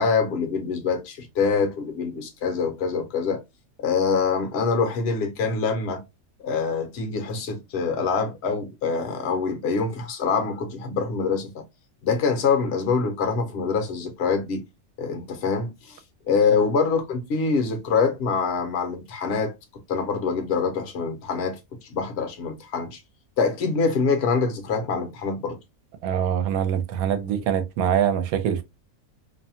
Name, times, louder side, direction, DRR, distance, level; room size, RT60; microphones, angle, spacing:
voice 1, 0.0-3.4 3.8-6.0 6.4-11.6 12.0-14.6 15.0-16.0 16.3-19.5 19.9-21.6 21.9-23.0 23.4-25.6, left 5 dB, 55° left, 0.9 m, -25 dB
voice 2, 26.0-28.6, right 9 dB, 80° right, 1.0 m, -24 dB
2.7 x 2.2 x 2.7 m
omnidirectional pair, 1.5 m